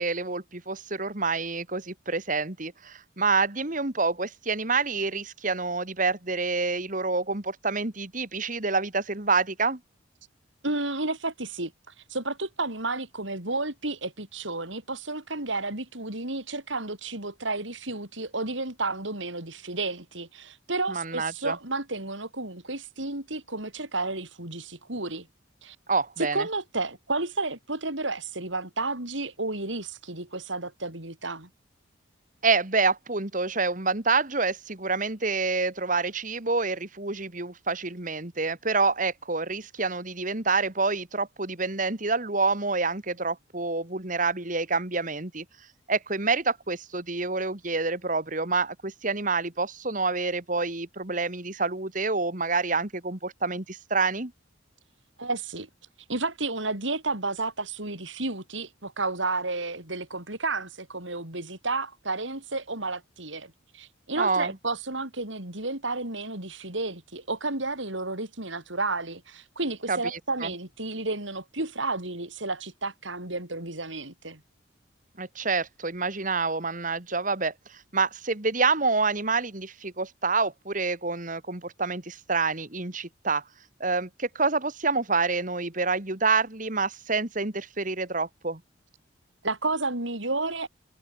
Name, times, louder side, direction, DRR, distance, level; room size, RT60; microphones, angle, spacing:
voice 1, 0.0-9.8 20.9-21.6 25.9-26.5 32.4-45.4 45.9-54.3 64.2-64.6 69.9-70.5 75.2-83.4 83.8-88.6, right 4 dB, 40° right, 2.2 m, -27 dB
voice 2, 10.6-11.7 12.1-25.3 25.6-25.8 26.2-31.5 55.2-55.7 56.1-74.4 89.4-90.7, right 2 dB, 75° right, 6.8 m, -32 dB
head